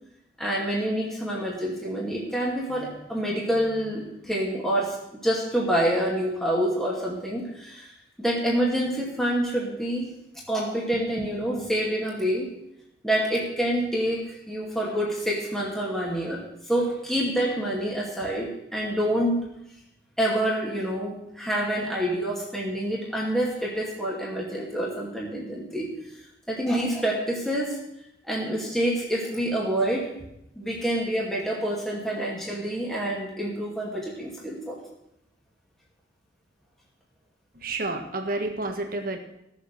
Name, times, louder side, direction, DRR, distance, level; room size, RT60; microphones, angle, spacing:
voice 1, 0.4-5.0 5.2-7.9 8.2-10.1 10.5-12.5 13.0-19.4 20.2-25.9 26.5-27.8 28.3-30.1 30.6-34.8, right 1 dB, ahead, -4 dB, 2.3 m, -27 dB
voice 2, 37.5-39.2, right 2 dB, 55° right, 4 dB, 1.7 m, -30 dB
16.0 x 7.4 x 6.7 m, 0.82 s
head